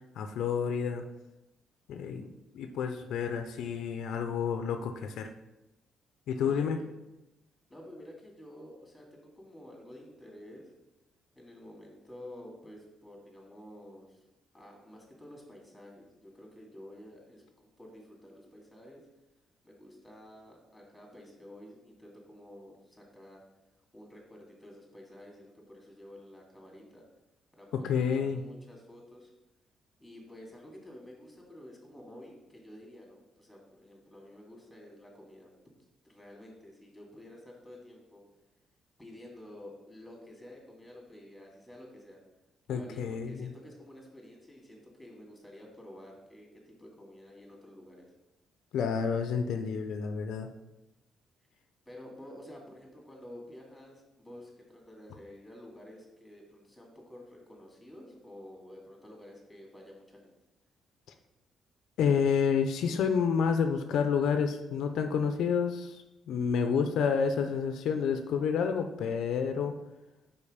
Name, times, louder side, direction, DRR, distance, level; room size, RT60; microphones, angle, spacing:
voice 1, 0.1-1.0 1.9-5.3 6.3-6.8 27.8-28.4 42.7-43.5 48.7-50.5 62.0-69.7, left 6 dB, 80° left, 7 dB, 0.5 m, -29 dB
voice 2, 6.4-6.9 7.7-10.7 11.4-14.2 14.5-17.4 17.8-19.0 19.6-23.4 23.9-27.0 27.5-29.3 30.0-35.5 36.0-38.2 39.0-42.2 42.7-48.1 51.9-60.3, left 1 dB, 5° left, -1 dB, 2.2 m, -50 dB
5.4 x 4.4 x 5.0 m, 0.95 s
cardioid pair, 90°, 0 cm